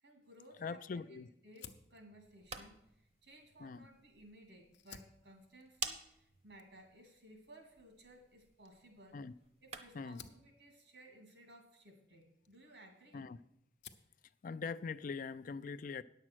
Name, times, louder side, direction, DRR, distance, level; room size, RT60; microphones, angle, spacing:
voice 1, 0.0-9.2 9.6-13.3, right 1 dB, 80° right, 3 dB, 2.7 m, -59 dB
voice 2, 0.6-1.3 3.6-3.9 9.1-9.3 9.9-10.2 13.1-13.4 14.4-16.0, left 5 dB, 50° left, 14 dB, 0.4 m, -42 dB
Fire, 1.5-4.2 4.6-13.3 13.6-14.2, left 8 dB, 85° left, 0.8 m, -60 dB
sound 1, 2.2-10.2, right 4 dB, 35° right, 0.8 m, -51 dB
9.9 x 7.3 x 6.2 m, 0.80 s
head